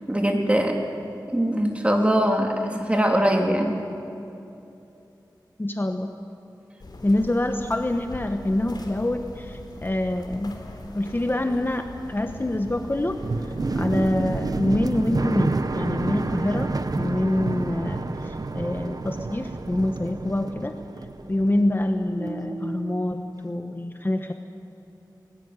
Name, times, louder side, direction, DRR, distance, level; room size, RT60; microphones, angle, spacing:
voice 1, 0.1-0.8 1.3-3.7, equal, 15° right, 2 dB, 3.3 m, -22 dB
voice 2, 5.6-6.1 7.0-10.6 10.9-13.2 13.7-20.8 21.3-24.3, left 1 dB, 25° left, 5 dB, 1.2 m, -26 dB
sound 1, 6.8-14.4, left 1 dB, 65° left, 3.5 m, -41 dB
sound 2, 11.8-21.9 22.1-23.0, right 3 dB, 55° right, 1.1 m, -29 dB
21.0 x 18.5 x 9.7 m, 2.8 s
wide cardioid pair, 60°, 8 cm